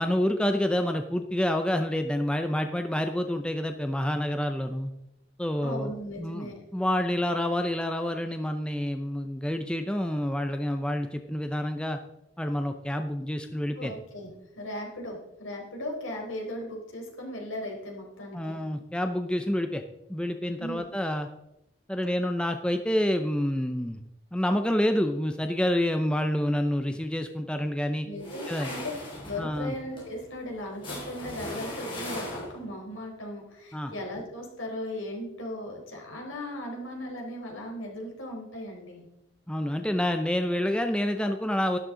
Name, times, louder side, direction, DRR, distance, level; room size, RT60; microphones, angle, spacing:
voice 1, 0.0-4.9 5.4-5.9 6.2-12.0 12.4-13.9 18.3-19.8 20.1-21.3 21.9-24.0 24.3-28.1 28.5-28.7 29.4-29.8 33.7-33.9 39.5-41.8, left 1 dB, 5° left, 6 dB, 0.6 m, -28 dB
voice 2, 5.6-6.6 13.8-14.3 14.5-18.6 20.6-20.9 28.0-28.8 29.2-39.1, left 1 dB, 80° left, 0 dB, 4.1 m, -37 dB
sound 1, 28.2-32.8, left 1 dB, 25° left, 3.6 m, -38 dB
12.5 x 12.0 x 3.8 m, 0.86 s
head